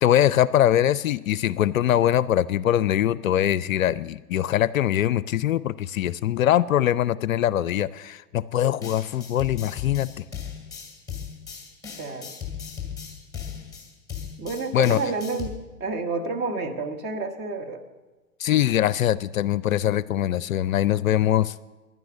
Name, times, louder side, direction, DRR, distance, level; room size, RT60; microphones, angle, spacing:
voice 1, 0.0-10.2 14.7-15.0 18.4-21.6, left 11 dB, 65° left, 19 dB, 0.5 m, -22 dB
sound 1, 8.8-15.5, left 8 dB, 10° left, 2.4 m, -37 dB
voice 2, 12.0-12.3 14.4-17.8, right 3 dB, 20° right, 5 dB, 1.2 m, -30 dB
10.5 x 9.4 x 9.1 m, 1.2 s
figure-of-eight pair, 110°, 45 cm